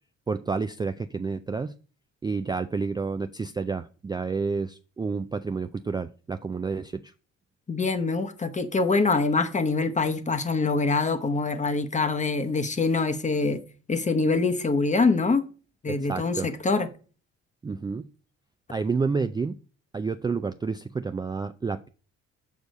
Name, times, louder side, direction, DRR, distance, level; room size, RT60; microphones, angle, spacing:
voice 1, 0.3-1.7 2.2-7.0 15.9-16.5 17.6-18.1 18.7-19.6 19.9-21.9, right 4 dB, 15° right, 0.3 m, -29 dB
voice 2, 7.7-13.6 13.9-15.4 15.8-16.9, left 3 dB, 25° left, 0.9 m, -24 dB
6.4 x 5.2 x 5.3 m
cardioid pair, 85°, 29 cm